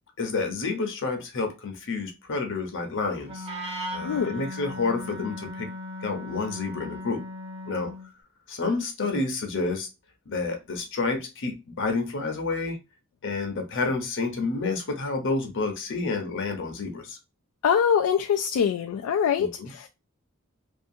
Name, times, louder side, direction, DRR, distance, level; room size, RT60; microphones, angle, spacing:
voice 1, 0.2-3.5 3.9-5.7 6.0-7.2 7.7-7.9 8.5-9.9 10.3-12.8 13.2-17.2 19.4-19.7, left 3 dB, 60° left, 0.8 m, -29 dB
Wind instrument woodwind instrument, 3.2-8.1, left 1 dB, 30° right, 0.7 m, -37 dB
voice 2, 4.0-4.4 17.6-19.9, left 7 dB, 90° left, 0.3 m, -24 dB
2.6 x 2.4 x 2.5 m
head